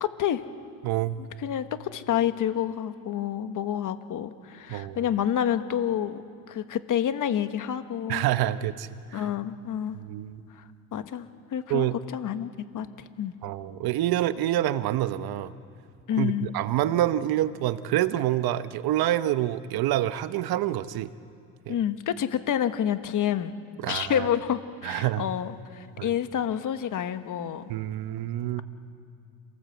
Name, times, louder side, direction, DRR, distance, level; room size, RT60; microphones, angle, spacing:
voice 1, 0.0-0.4 1.4-6.2 6.5-8.2 9.1-10.0 10.5-10.6 10.9-13.3 16.1-16.5 21.7-23.5 23.9-27.6, left 10 dB, 55° left, 10 dB, 1.4 m, -28 dB
voice 2, 0.8-1.3 4.7-5.0 8.1-9.2 9.9-10.4 11.7-11.9 13.4-15.5 16.2-21.1 21.7-21.8 23.8-24.3 24.8-25.2 26.0-26.1 27.7-28.6, right 13 dB, 75° right, 13 dB, 1.0 m, -27 dB
27.0 x 18.5 x 8.1 m, 2.4 s
cardioid pair, 110°, 37 cm